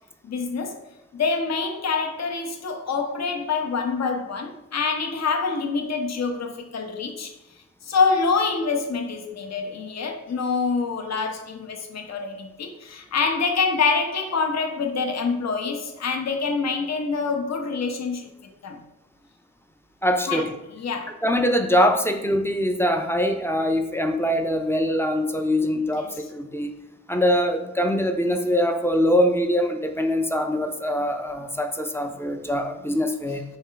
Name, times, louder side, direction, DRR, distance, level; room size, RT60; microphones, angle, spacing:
voice 1, 0.2-0.8 1.1-7.3 7.8-18.3 18.6-18.8 20.3-20.4 20.8-21.2 25.9-26.2, left 4 dB, 60° left, 4 dB, 0.6 m, -26 dB
voice 2, 20.0-20.5 21.2-26.7 27.1-33.4, equal, 10° left, 4 dB, 0.4 m, -23 dB
4.4 x 3.2 x 3.7 m, 0.91 s
wide cardioid pair, 125°, 31 cm